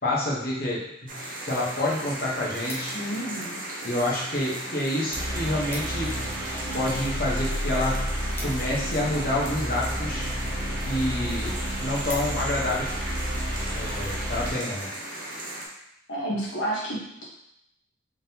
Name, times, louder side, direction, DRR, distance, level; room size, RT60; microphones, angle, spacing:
voice 1, 0.0-2.9 3.8-6.2 6.7-8.1 8.4-10.3 10.8-13.0 13.7-14.9, left 1 dB, 50° left, -4 dB, 1.1 m, -28 dB
sound 1, 1.1-15.7, right 1 dB, 45° right, 0.8 m, -36 dB
sound 2, 2.7-3.3 4.0-4.5 4.8-4.9 5.2-5.3 5.5-6.1 6.5-9.3 10.0-10.4 10.9-11.0 11.3-11.4 11.7-12.7 13.2-13.4, left 1 dB, 10° left, 0.6 m, -43 dB
voice 2, 2.9-3.6 16.1-17.3, right 1 dB, 75° left, -5 dB, 1.2 m, -31 dB
sound 3, 5.1-14.5, equal, 25° right, 1.3 m, -31 dB
3.7 x 3.6 x 2.8 m, 0.78 s
head